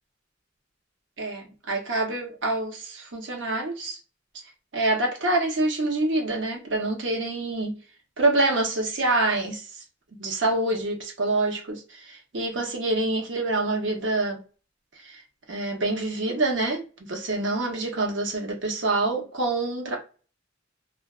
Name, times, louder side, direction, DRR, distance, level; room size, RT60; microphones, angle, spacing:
voice 1, 1.2-4.0 4.7-7.8 8.2-9.7 10.2-14.4 15.0-15.2 15.5-20.0, right 2 dB, 75° right, 0.8 m, -26 dB
2.4 x 2.2 x 2.3 m
head